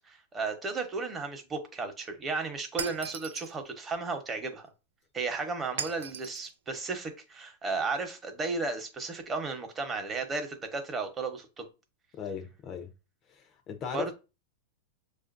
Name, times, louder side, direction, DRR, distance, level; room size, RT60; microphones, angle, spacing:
voice 1, 0.1-4.6 5.1-11.7 13.9-14.1, right 3 dB, 20° right, 1.0 m, -34 dB
Shatter, 2.8-3.5 5.8-6.5, right 8 dB, 85° right, 0.3 m, -38 dB
voice 2, 12.1-12.9 13.3-14.1, left 7 dB, 35° left, 0.6 m, -38 dB
6.3 x 2.5 x 2.5 m
hypercardioid pair, 125°, 0 cm